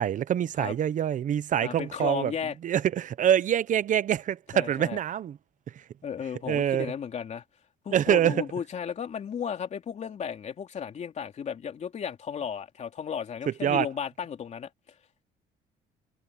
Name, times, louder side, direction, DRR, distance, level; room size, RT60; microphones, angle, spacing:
voice 1, 0.0-2.3 2.6-5.4 6.5-6.9 7.9-8.4 13.6-13.9, right 10 dB, 50° right, 0.9 m, -25 dB
voice 2, 1.6-2.6 4.5-5.0 6.0-7.4 7.8-14.7, left 7 dB, 45° left, 3.1 m, -34 dB
cardioid pair, 110°, 17 cm